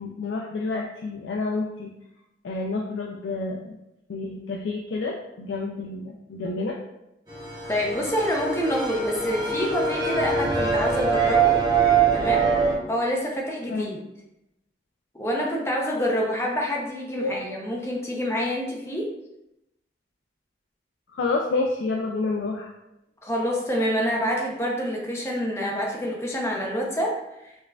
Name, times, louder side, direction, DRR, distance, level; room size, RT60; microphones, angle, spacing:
voice 1, 0.0-1.9 2.4-3.7 4.1-6.8 13.7-13.9 17.2-17.4 21.1-22.7, left 3 dB, 80° left, 0 dB, 0.4 m, -29 dB
sound 1, 7.3-12.7, right 5 dB, 25° right, 0.8 m, -23 dB
voice 2, 7.7-11.6 12.1-12.5 12.9-14.0 15.1-19.1 23.2-27.7, equal, 15° left, -2 dB, 0.6 m, -27 dB
5.1 x 2.4 x 2.2 m, 0.86 s
head